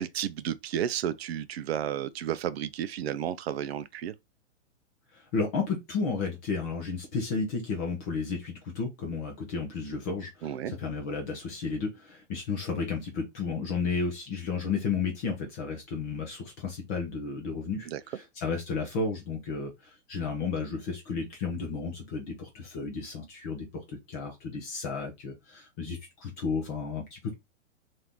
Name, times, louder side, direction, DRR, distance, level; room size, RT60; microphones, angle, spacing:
voice 1, 0.0-4.1 10.4-10.7 17.9-18.0, right 10 dB, 55° right, 0.5 m, -32 dB
voice 2, 5.1-27.3, left 4 dB, 15° left, 0.3 m, -33 dB
2.8 x 2.6 x 3.4 m
hypercardioid pair, 135°, 38 cm